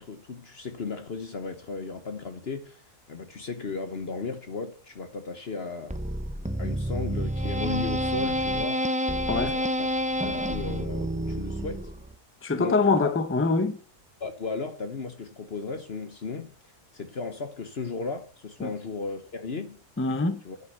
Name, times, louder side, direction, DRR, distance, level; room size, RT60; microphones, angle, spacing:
voice 1, 0.0-2.8 3.1-6.0 6.6-8.9 9.4-9.9 10.2-11.9 12.6-13.1 14.2-16.5 16.9-19.8 20.4-20.6, left 4 dB, 45° left, 1.2 m, -35 dB
sound 1, 5.9-12.1, equal, 10° right, 0.3 m, -29 dB
voice 2, 12.4-13.8 18.6-18.7 20.0-20.4, left 3 dB, 10° left, 0.7 m, -24 dB
11.0 x 5.8 x 6.9 m
omnidirectional pair, 1.6 m